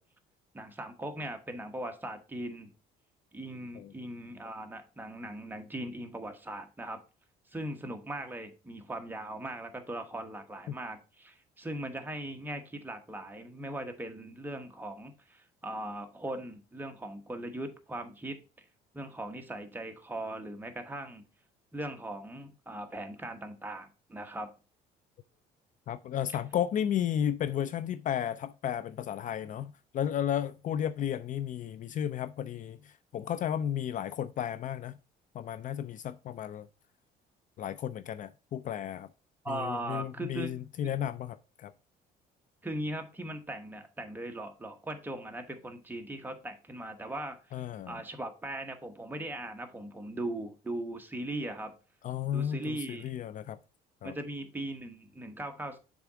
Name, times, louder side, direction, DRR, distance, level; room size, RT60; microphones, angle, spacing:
voice 1, 0.5-2.7 3.3-7.0 7.5-18.4 18.9-21.2 21.7-24.5 39.4-40.5 42.6-51.7 52.3-53.0 54.0-55.8, right 1 dB, 10° right, 1.1 m, -39 dB
voice 2, 25.9-35.0 35.3-36.7 37.6-39.1 39.5-41.7 47.5-48.0 52.0-53.6 54.0-54.2, left 10 dB, 50° left, 0.4 m, -33 dB
6.8 x 3.7 x 4.8 m
cardioid pair, 110°, 17 cm